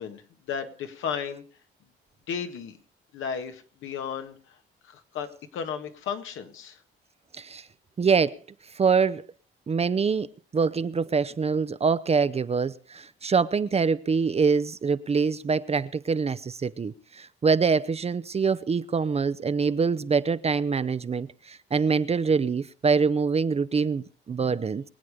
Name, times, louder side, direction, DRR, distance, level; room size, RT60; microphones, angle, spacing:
voice 1, 0.0-1.4 2.3-2.8 3.1-4.6 4.8-6.8, left 7 dB, 80° left, 1.9 m, -34 dB
voice 2, 8.0-8.4 8.7-9.2 9.7-24.8, right 5 dB, 30° right, 0.6 m, -25 dB
23.5 x 8.5 x 5.0 m
cardioid pair, 90°, 20 cm